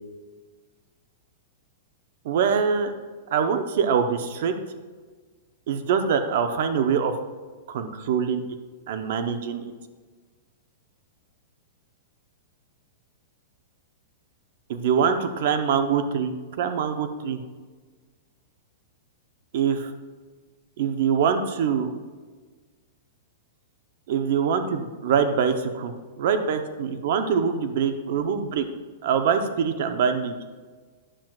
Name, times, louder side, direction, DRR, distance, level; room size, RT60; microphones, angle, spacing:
voice 1, 2.2-2.9 3.3-4.5 5.7-7.1 7.7-8.4 8.9-9.7 14.7-17.4 19.5-19.9 20.8-21.9 24.1-28.6 29.0-30.4, right 6 dB, 55° right, 7 dB, 0.7 m, -24 dB
9.9 x 7.5 x 2.4 m, 1.4 s
supercardioid pair, 165°, 0 cm